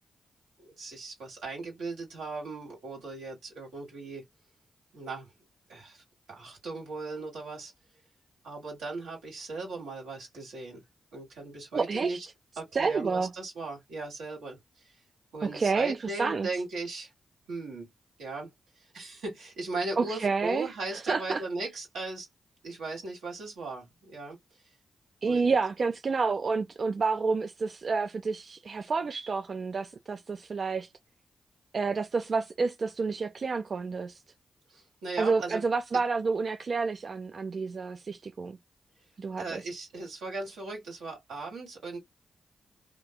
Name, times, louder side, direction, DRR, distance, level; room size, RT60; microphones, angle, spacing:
voice 1, 0.6-4.2 4.9-5.3 5.7-7.7 8.4-10.8 11.1-12.3 12.6-14.6 14.8-14.9 15.3-17.1 17.5-17.9 18.2-22.3 22.6-24.4 25.2-25.5 34.7-35.6 39.4-42.0, right 3 dB, 85° right, 1.5 m, -38 dB
voice 2, 11.7-12.2 12.7-13.3 15.4-16.5 20.0-21.4 25.2-30.9 31.7-34.2 35.2-38.6 39.2-39.6, right 4 dB, 60° right, 0.3 m, -29 dB
3.0 x 2.3 x 2.2 m
supercardioid pair, 40°, 0 cm